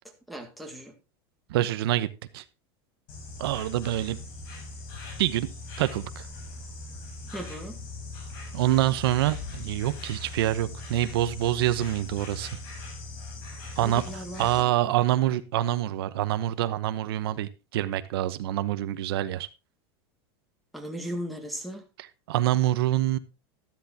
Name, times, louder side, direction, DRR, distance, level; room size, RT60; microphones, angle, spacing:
voice 1, 0.3-0.9 7.3-7.8 13.8-14.7 20.7-21.8, equal, ahead, 1 dB, 2.0 m, -37 dB
voice 2, 1.5-2.1 2.3-2.4 3.4-4.2 5.2-5.5 5.8-6.3 8.5-12.6 13.8-19.5 22.0-23.2, right 13 dB, 80° right, 12 dB, 1.0 m, -26 dB
Insect, 3.1-14.6, left 3 dB, 65° left, 6.2 m, -40 dB
13.0 x 12.0 x 2.8 m, 0.28 s
supercardioid pair, 155°, 13 cm